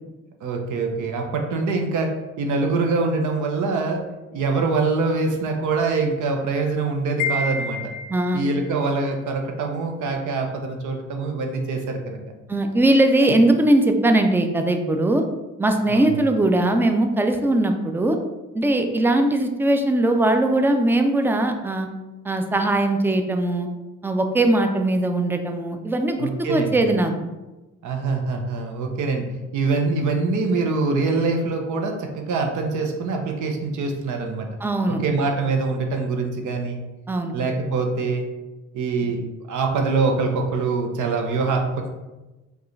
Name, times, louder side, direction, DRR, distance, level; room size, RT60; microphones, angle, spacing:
voice 1, 0.4-4.0 4.3-7.9 8.3-12.2 15.9-16.2 26.2-26.8 27.8-29.3 29.5-34.5 34.9-36.8 37.3-38.3 38.7-41.9, right 3 dB, 75° right, 3 dB, 0.7 m, -24 dB
Wind chime, 7.2-8.6, left 3 dB, 90° left, 0.5 m, -28 dB
voice 2, 8.1-8.4 12.5-15.2 15.6-18.2 18.5-21.9 22.2-23.7 24.0-27.1 34.6-35.0 37.1-37.3, right 1 dB, 5° right, 5 dB, 0.4 m, -20 dB
4.6 x 2.4 x 3.1 m, 1.1 s
cardioid pair, 90°, 30 cm